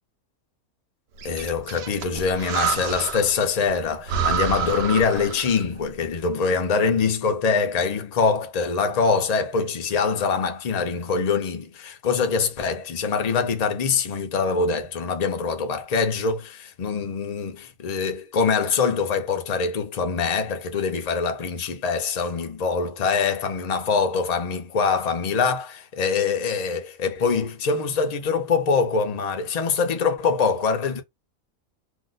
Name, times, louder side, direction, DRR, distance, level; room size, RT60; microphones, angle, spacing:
voice 1, 1.2-31.0, left 5 dB, 45° left, 0.5 m, -24 dB
Breathing, 1.2-3.4 3.7-3.8 4.1-5.8, right 7 dB, 65° right, 0.7 m, -28 dB
2.7 x 2.1 x 3.8 m
omnidirectional pair, 1.5 m